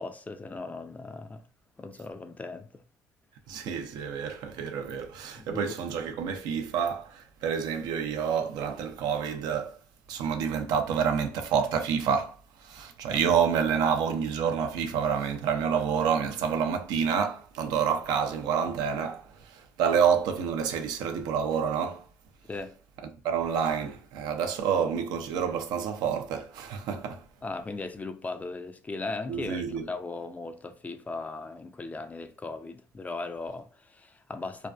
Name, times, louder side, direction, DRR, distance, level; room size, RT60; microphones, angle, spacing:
voice 1, 0.0-1.4 1.8-2.8 5.4-5.8 13.1-13.2 22.5-22.7 27.4-34.7, left 3 dB, 20° left, 0.3 m, -38 dB
voice 2, 3.5-9.8 10.1-12.4 12.6-22.0 23.2-27.2 29.3-29.9, right 7 dB, 75° right, 0.4 m, -28 dB
2.5 x 2.2 x 2.2 m
supercardioid pair, 70°, 7 cm